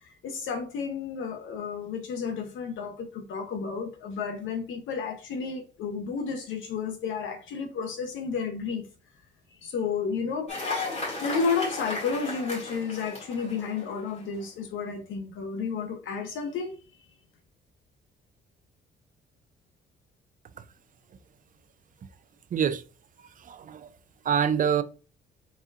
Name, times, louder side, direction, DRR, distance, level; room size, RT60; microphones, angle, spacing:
voice 1, 0.0-8.9 9.6-10.5 11.2-16.7, left 5 dB, 80° left, 0.8 m, -32 dB
Cheering / Applause, 10.5-14.2, left 3 dB, 35° left, 2.1 m, -35 dB
voice 2, 22.5-22.8 23.4-23.9 24.2-24.8, right 8 dB, 45° right, 0.5 m, -25 dB
4.3 x 3.6 x 2.4 m
cardioid pair, 90°, 20 cm